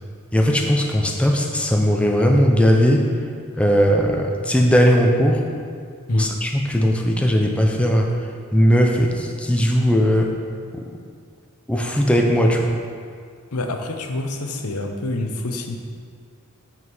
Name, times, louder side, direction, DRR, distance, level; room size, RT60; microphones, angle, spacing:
voice 1, 0.3-3.1 3.6-5.4 6.1-8.1 8.5-10.3 10.7-10.8 11.7-12.7, equal, 5° left, 1 dB, 0.6 m, -18 dB
voice 2, 13.5-15.8, left 2 dB, 85° left, 4 dB, 0.9 m, -27 dB
7.4 x 5.8 x 6.2 m, 2.1 s
head